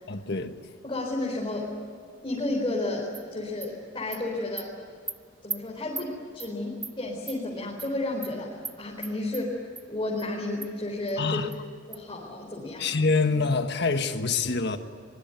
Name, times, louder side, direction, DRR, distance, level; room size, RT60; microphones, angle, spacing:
voice 1, 0.1-0.6 11.2-11.5 12.8-14.8, left 4 dB, 60° left, 1.5 m, -26 dB
voice 2, 0.8-1.7 2.2-4.7 5.4-9.6 9.9-11.4 11.9-12.9, left 2 dB, 25° left, 4.3 m, -32 dB
Animal, 3.1-3.2 3.6-3.7 4.1-4.2 4.6-4.7 5.1-5.2 5.5-5.6 6.0-6.1 6.4-6.5 6.8-6.9 7.3-7.4 7.8-7.9 8.2-8.3 8.6-8.8 9.0-9.4 9.8-9.9 10.2-10.3 10.6-10.7 11.1-11.2 11.5-11.6 11.9-12.0, right 4 dB, 10° right, 0.6 m, -36 dB
23.5 x 22.0 x 9.3 m
head